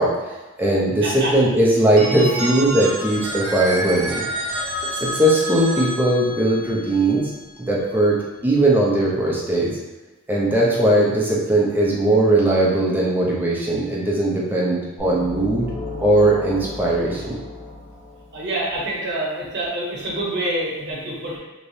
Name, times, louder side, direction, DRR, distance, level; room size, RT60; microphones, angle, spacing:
voice 1, 0.0-4.2 4.9-7.3 7.6-9.7 10.3-15.7 16.0-17.4, right 1 dB, 10° right, -5 dB, 0.6 m, -19 dB
voice 2, 1.0-1.3 18.3-21.4, right 1 dB, 55° right, -5 dB, 0.9 m, -26 dB
Telephone, 1.9-7.7, right 1 dB, 80° right, 0.5 m, -29 dB
sound 1, 15.0-18.7, left 2 dB, 80° left, 0.8 m, -34 dB
3.2 x 3.0 x 2.7 m, 1.1 s
head